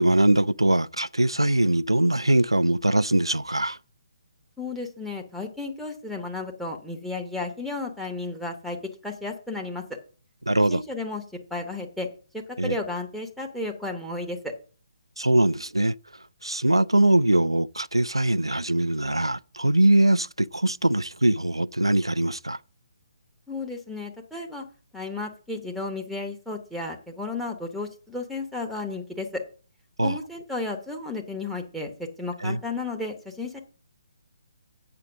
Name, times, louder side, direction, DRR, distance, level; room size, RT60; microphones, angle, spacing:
voice 1, 0.0-3.8 10.5-10.8 12.6-12.8 15.2-15.9 16.4-22.6 30.0-30.2 32.4-32.6, right 1 dB, 85° right, 0.4 m, -22 dB
voice 2, 4.6-8.8 9.0-9.8 10.7-11.2 11.5-12.1 12.3-14.5 23.5-24.6 24.9-29.4 30.0-33.6, left 3 dB, ahead, 1.0 m, -33 dB
7.7 x 5.7 x 6.1 m
figure-of-eight pair, 140°, 3 cm